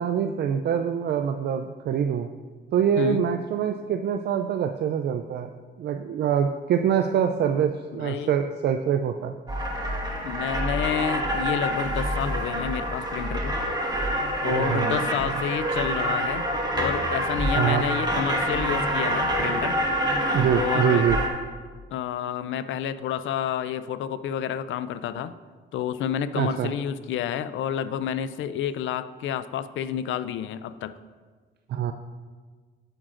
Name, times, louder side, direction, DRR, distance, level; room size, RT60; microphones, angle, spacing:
voice 1, 0.0-2.3 2.7-5.5 5.8-9.3 14.4-15.0 17.6-17.9 20.3-21.2 26.3-26.7 31.7-31.9, right 8 dB, 55° right, 6 dB, 0.4 m, -25 dB
voice 2, 7.9-8.3 10.2-13.6 14.4-16.5 16.7-19.8 20.5-21.1 21.9-25.3 25.7-30.9, left 9 dB, 75° left, 13 dB, 0.4 m, -29 dB
sound 1, 9.5-21.3, equal, 20° right, 1.2 m, -26 dB
9.0 x 8.6 x 2.5 m, 1.5 s
cardioid pair, 90°, 20 cm